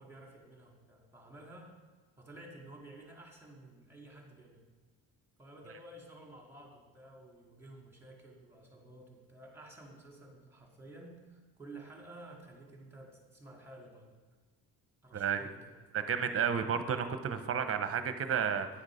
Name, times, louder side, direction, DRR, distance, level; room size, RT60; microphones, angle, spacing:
voice 1, 0.0-1.7 2.2-4.6 5.4-14.1 15.0-15.7, right 2 dB, 5° right, 0 dB, 2.2 m, -52 dB
voice 2, 15.9-18.7, right 7 dB, 35° right, 9 dB, 0.8 m, -31 dB
9.9 x 6.5 x 5.0 m, 1.3 s
cardioid pair, 110°, 39 cm